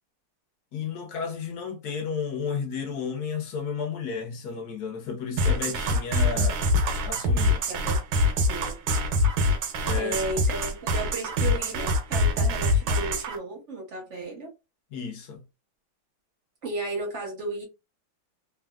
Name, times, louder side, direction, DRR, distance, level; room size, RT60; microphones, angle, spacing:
voice 1, 0.7-6.6 7.0-7.6 9.8-10.2 14.9-15.4, left 5 dB, 65° left, 1.0 m, -32 dB
sound 1, 5.4-13.4, left 1 dB, 75° right, 1.4 m, -24 dB
voice 2, 7.7-8.0 8.5-8.8 10.0-14.5 16.6-17.6, right 2 dB, 50° right, 0.8 m, -34 dB
3.4 x 2.3 x 2.3 m
omnidirectional pair, 2.3 m